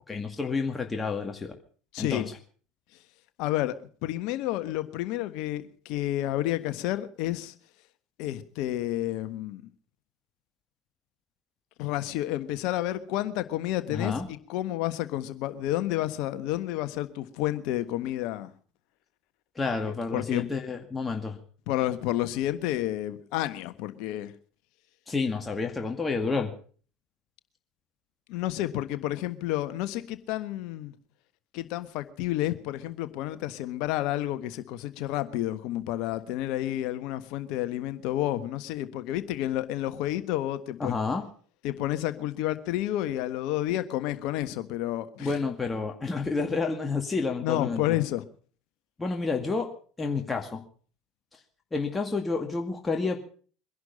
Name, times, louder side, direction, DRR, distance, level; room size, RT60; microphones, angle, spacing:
voice 1, 0.1-1.5 2.0-2.3 13.9-14.3 19.6-21.4 25.1-26.5 40.8-41.2 45.2-48.0 49.0-49.7 50.0-50.6 51.7-53.2, left 4 dB, 20° left, 2.2 m, -29 dB
voice 2, 1.9-2.3 3.4-3.7 4.0-7.5 8.2-9.6 11.8-14.1 14.5-18.5 19.9-20.5 21.7-24.3 28.3-30.9 31.5-40.9 41.6-45.3 47.4-48.2, left 14 dB, 60° left, 1.4 m, -30 dB
22.5 x 11.0 x 5.4 m
hypercardioid pair, 70°, 0 cm